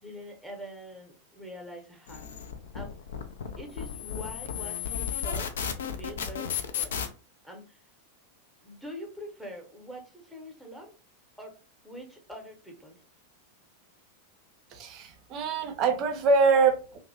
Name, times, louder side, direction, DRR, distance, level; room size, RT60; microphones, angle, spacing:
voice 1, 0.0-2.3 2.7-3.0 3.6-6.9 7.4-7.8 8.6-10.9 11.4-11.5 11.8-13.0, equal, ahead, 1 dB, 0.8 m, -44 dB
sound 1, 2.1-7.1, left 8 dB, 60° left, 0.4 m, -34 dB
voice 2, 14.7-17.0, right 4 dB, 35° right, 6 dB, 0.5 m, -24 dB
2.5 x 2.0 x 2.5 m, 0.36 s
figure-of-eight pair, 90°, 0 cm